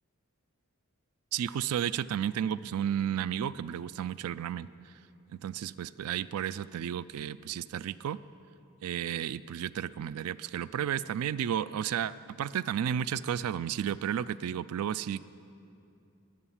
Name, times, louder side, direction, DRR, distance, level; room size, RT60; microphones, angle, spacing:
voice 1, 1.3-4.7 5.4-8.2 8.8-15.2, right 9 dB, 75° right, 18 dB, 0.3 m, -32 dB
12.5 x 7.8 x 9.9 m, 2.7 s
head